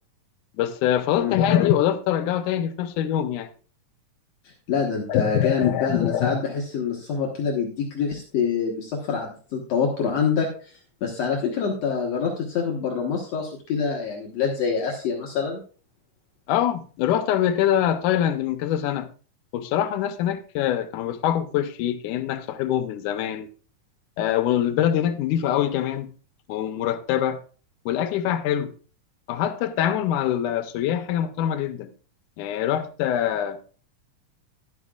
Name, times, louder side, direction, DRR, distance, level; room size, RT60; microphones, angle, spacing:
voice 1, 0.6-3.5 5.1-6.4 16.5-19.1 19.5-23.5 24.2-26.1 26.5-27.4 27.9-28.7 29.3-31.9 32.4-33.6, left 10 dB, 85° left, 2.3 m, -24 dB
voice 2, 4.7-15.6, left 6 dB, 65° left, 2.3 m, -26 dB
12.5 x 11.5 x 2.4 m
omnidirectional pair, 3.5 m